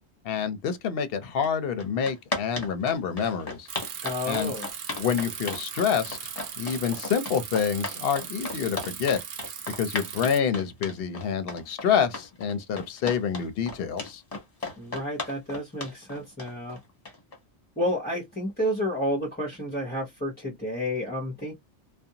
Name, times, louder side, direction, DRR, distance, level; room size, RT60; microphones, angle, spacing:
voice 1, 0.2-3.7 4.3-4.5 5.0-6.2 6.6-9.2 9.8-14.2, left 7 dB, 65° left, 0.8 m, -27 dB
sound 1, 1.4-1.5 1.8-17.4, left 2 dB, 35° left, 1.0 m, -35 dB
Bicycle, 3.7-10.4, right 8 dB, 60° right, 0.6 m, -38 dB
voice 2, 4.0-4.7 14.8-16.8 17.8-21.5, equal, 10° left, 0.8 m, -30 dB
2.5 x 2.2 x 2.8 m
omnidirectional pair, 1.1 m